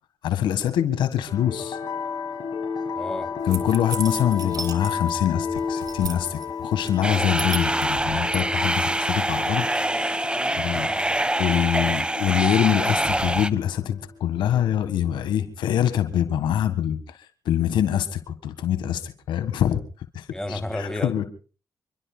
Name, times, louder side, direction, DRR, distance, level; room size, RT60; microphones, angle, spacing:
voice 1, 0.2-1.8 3.5-9.7 10.6-10.9 11.4-17.0 17.5-19.8 20.1-21.3, left 10 dB, 90° left, 11 dB, 1.6 m, -24 dB
sound 1, 1.2-15.3, left 5 dB, 70° left, 5.8 m, -33 dB
voice 2, 2.9-3.3 10.2-11.3 11.7-12.0 20.3-21.2, left 1 dB, 5° left, 7 dB, 3.2 m, -33 dB
sound 2, 3.5-5.2 5.5-6.4 6.9-8.4, right 4 dB, 55° right, 3.3 m, -35 dB
sound 3, 7.0-13.5, right 1 dB, 15° right, 1.2 m, -25 dB
27.0 x 23.5 x 2.3 m, 0.38 s
cardioid pair, 60°, 8 cm